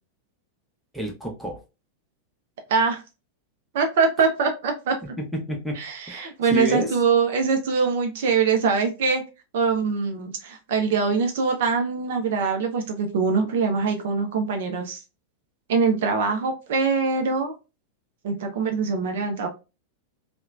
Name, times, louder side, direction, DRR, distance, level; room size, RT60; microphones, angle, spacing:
voice 1, 0.9-1.6 5.0-5.8 6.1-6.9, right 1 dB, ahead, 0 dB, 0.7 m, -29 dB
voice 2, 2.7-3.0 3.7-4.9 5.8-9.2 9.5-15.0 15.7-17.5 18.2-19.5, right 5 dB, 55° right, 4 dB, 0.4 m, -23 dB
2.9 x 2.1 x 2.3 m, 0.29 s
figure-of-eight pair, 90°, 0 cm